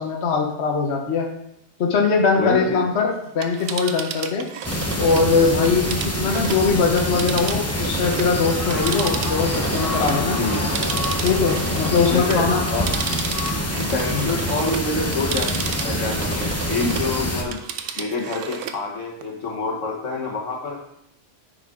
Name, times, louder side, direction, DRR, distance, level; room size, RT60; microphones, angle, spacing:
voice 1, 0.0-1.4 1.8-4.5 5.0-10.4 11.2-12.7 14.1-14.2, left 5 dB, 60° left, 1 dB, 1.2 m, -21 dB
voice 2, 2.4-2.8 10.3-10.8 12.1-12.9 13.8-17.6 18.0-20.8, left 3 dB, 85° left, 1 dB, 1.7 m, -27 dB
Telephone, 3.3-8.4 8.7-17.1 17.4-18.8 19.2-19.3, right 7 dB, 85° right, 1.0 m, -33 dB
sound 1, 4.6-17.4, left 1 dB, 15° left, 0.7 m, -25 dB
9.7 x 5.2 x 3.7 m, 0.80 s
omnidirectional pair, 1.3 m